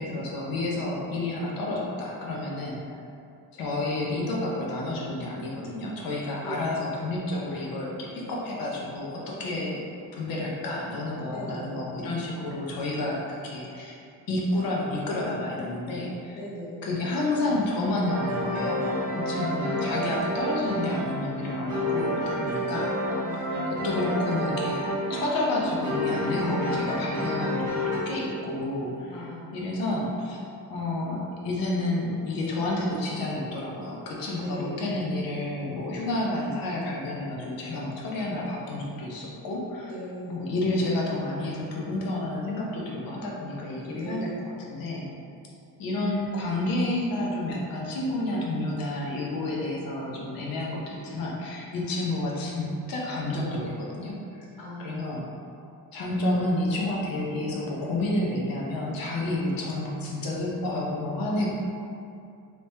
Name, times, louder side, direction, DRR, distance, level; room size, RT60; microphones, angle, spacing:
voice 1, 0.0-2.8 3.5-9.8 10.1-13.9 14.3-16.4 16.8-23.2 23.7-24.8 25.1-30.4 30.7-39.9 40.3-45.1 45.8-54.5 54.8-55.3 55.9-61.5, left 1 dB, 55° left, -3 dB, 0.7 m, -30 dB
voice 2, 6.4-6.8 11.3-11.8 16.4-16.9 19.1-19.9 23.0-23.7 29.1-29.5 34.3-34.9 39.9-40.4 44.0-44.4 54.6-55.0 61.3-61.5, equal, 85° left, -6 dB, 1.1 m, -39 dB
sound 1, 18.1-28.0, left 1 dB, 45° right, 0.8 m, -29 dB
3.4 x 2.9 x 2.7 m, 2.5 s
cardioid pair, 180°, 42 cm